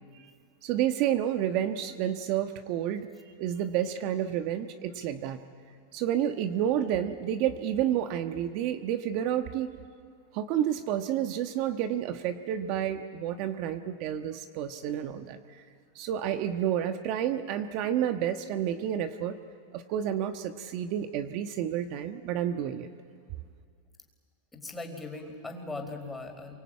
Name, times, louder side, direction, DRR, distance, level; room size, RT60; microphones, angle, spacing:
voice 1, 0.6-3.1 3.4-5.4 5.9-9.7 10.3-15.6 15.9-19.4 19.7-22.9, right 10 dB, 50° right, 7 dB, 1.3 m, -30 dB
voice 2, 24.5-26.5, left 2 dB, 10° left, 4 dB, 4.3 m, -39 dB
27.0 x 24.5 x 8.8 m, 2.1 s
hypercardioid pair, 120°, 0 cm